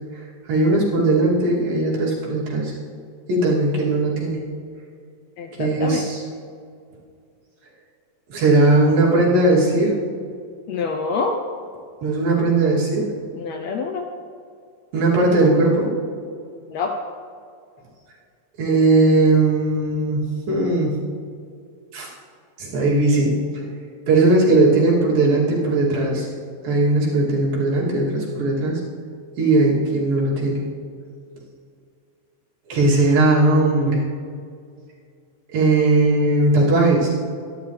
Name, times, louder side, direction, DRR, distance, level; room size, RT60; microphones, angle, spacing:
voice 1, 0.5-2.7 3.3-4.4 5.5-6.2 8.3-9.9 12.0-13.0 14.9-15.9 18.6-21.0 21.9-22.1 22.6-23.4 24.1-26.3 26.6-28.8 29.4-30.6 32.7-34.0 35.5-37.1, right 2 dB, 80° right, -5 dB, 4.5 m, -18 dB
voice 2, 5.4-6.0 10.7-11.4 13.3-14.0 16.7-17.0, left 4 dB, 75° left, 4 dB, 1.6 m, -26 dB
23.5 x 11.0 x 3.3 m, 2.3 s
omnidirectional pair, 4.0 m